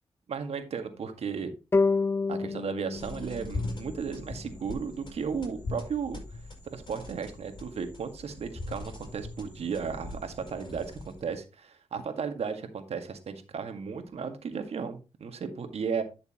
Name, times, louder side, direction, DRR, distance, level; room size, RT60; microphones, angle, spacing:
voice 1, 0.3-1.5 2.3-6.2 6.7-16.0, right 6 dB, 70° right, 7 dB, 1.9 m, -35 dB
sound 1, 1.7-5.0, left 4 dB, 25° left, 0.3 m, -30 dB
sound 2, 2.9-11.4, left 2 dB, 45° left, 6.2 m, -41 dB
11.0 x 6.6 x 3.0 m, 0.29 s
cardioid pair, 50°, 11 cm